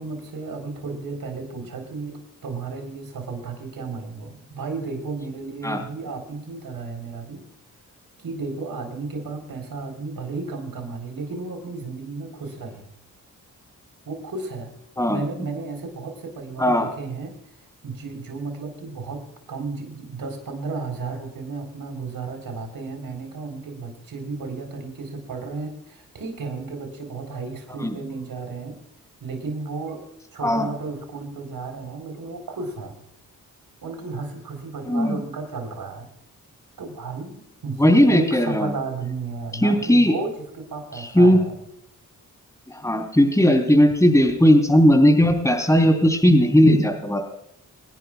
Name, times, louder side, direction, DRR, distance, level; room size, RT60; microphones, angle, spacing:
voice 1, 0.0-7.4 8.2-12.9 14.1-14.7 15.1-17.3 17.8-19.2 19.5-28.8 29.2-30.0 30.3-32.9 33.8-36.1 36.8-41.6, right 4 dB, 75° right, 4 dB, 4.2 m, -33 dB
voice 2, 16.6-16.9 27.8-28.0 30.4-30.7 34.9-35.2 37.8-38.7 39.6-40.1 41.0-41.4 42.7-47.2, equal, 10° left, 3 dB, 3.7 m, -17 dB
27.0 x 11.0 x 2.4 m, 0.75 s
cardioid pair, 65°, 35 cm